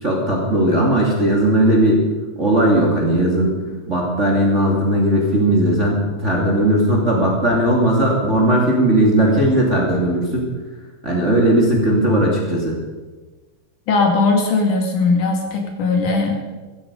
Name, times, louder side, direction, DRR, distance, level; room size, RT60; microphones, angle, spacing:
voice 1, 0.0-2.1 2.4-3.6 3.9-10.5 11.0-12.8, right 1 dB, 25° right, -2 dB, 2.4 m, -17 dB
voice 2, 13.9-16.4, left 3 dB, 65° left, 2 dB, 3.7 m, -18 dB
16.0 x 14.5 x 5.3 m, 1.3 s
omnidirectional pair, 3.9 m